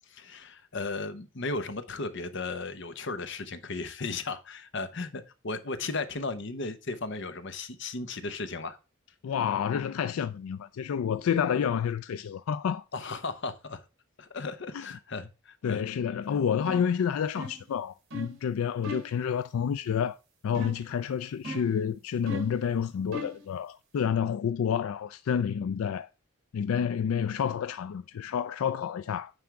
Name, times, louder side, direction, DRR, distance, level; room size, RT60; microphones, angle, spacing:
voice 1, 0.1-8.8 12.9-13.8 14.2-15.8, left 3 dB, 60° left, 0.9 m, -35 dB
voice 2, 9.2-12.8 14.7-14.8 15.6-20.2 20.4-26.1 26.5-29.3, left 7 dB, 85° left, 0.3 m, -29 dB
sound 1, 16.7-16.9 17.4-17.7 18.1-18.4 18.8-19.2 20.5-20.9 21.4-21.8 22.3-22.6 23.1-23.4, left 1 dB, 70° right, 2.7 m, -38 dB
9.6 x 3.5 x 4.7 m
head